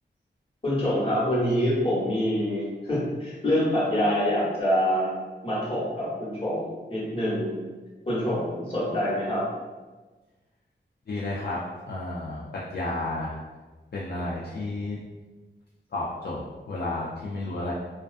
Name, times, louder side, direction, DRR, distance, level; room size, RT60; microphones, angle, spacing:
voice 1, 0.6-5.1 5.4-7.5 8.1-9.5, equal, 30° left, -8 dB, 1.1 m, -26 dB
voice 2, 11.1-13.4 13.9-15.0 15.9-17.7, left 2 dB, 55° left, -6 dB, 0.4 m, -32 dB
2.4 x 2.2 x 2.4 m, 1.3 s
wide cardioid pair, 80°, 19 cm